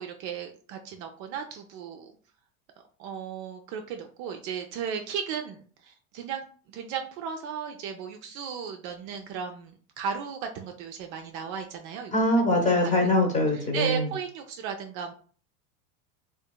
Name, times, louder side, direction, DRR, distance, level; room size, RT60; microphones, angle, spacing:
voice 1, 0.0-2.1 3.0-12.1 12.8-13.1 13.5-15.1, right 7 dB, 50° right, 5 dB, 0.4 m, -35 dB
voice 2, 12.1-14.1, left 1 dB, 20° left, 1 dB, 0.9 m, -23 dB
2.7 x 2.5 x 2.2 m, 0.43 s
hypercardioid pair, 105°, 41 cm